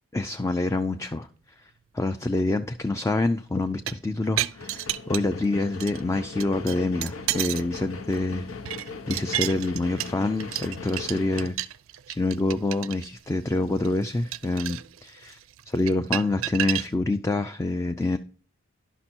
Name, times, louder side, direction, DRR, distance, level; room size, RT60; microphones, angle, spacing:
voice 1, 0.1-1.3 1.6-8.5 9.1-11.6 12.1-15.4 15.7-18.2, left 2 dB, 15° left, 8 dB, 0.3 m, -26 dB
sound 1, 3.6-5.4 5.8-6.0 6.4-7.7 8.0-16.9, right 13 dB, 80° right, 0.4 m, -32 dB
sound 2, 4.6-11.5, left 4 dB, 85° left, 1.0 m, -39 dB
11.0 x 6.0 x 4.4 m, 0.41 s
head